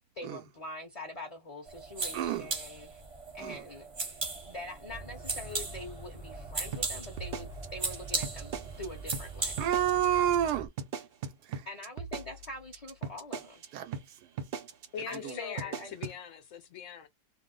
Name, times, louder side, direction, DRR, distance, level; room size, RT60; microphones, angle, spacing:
voice 1, 0.2-3.0 3.3-4.1 4.5-9.6 11.7-13.6 15.1-16.0, left 1 dB, 30° left, 0.7 m, -44 dB
sound 1, 1.7-9.9, right 3 dB, 25° right, 0.7 m, -38 dB
voice 2, 2.1-2.5 3.4-3.6 9.6-10.7 11.5-11.7 13.7-14.0 15.2-15.3, right 10 dB, 85° right, 1.2 m, -29 dB
sound 2, 4.9-10.7, right 4 dB, 10° left, 0.4 m, -45 dB
sound 3, 6.7-8.9 9.1-9.3 9.6-10.1 10.3-10.5 10.8-13.7 13.9-14.1 14.4-14.9 15.1-15.3 15.6-16.2, right 6 dB, 60° right, 0.6 m, -38 dB
voice 3, 14.9-17.1, left 8 dB, 65° left, 0.9 m, -41 dB
2.8 x 2.1 x 3.8 m
omnidirectional pair, 1.7 m